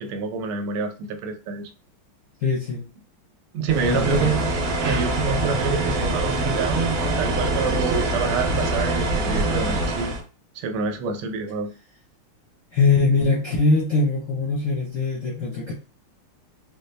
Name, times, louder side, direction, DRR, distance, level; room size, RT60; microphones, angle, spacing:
voice 1, 0.0-1.7 3.5-10.1 10.5-11.7, right 4 dB, 85° right, 6 dB, 1.5 m, -27 dB
voice 2, 2.4-2.9 3.8-4.3 12.7-15.7, left 3 dB, 60° left, -4 dB, 0.8 m, -22 dB
sound 1, 3.7-10.2, right 2 dB, 60° right, 0.9 m, -24 dB
4.1 x 2.0 x 3.2 m, 0.34 s
omnidirectional pair, 2.3 m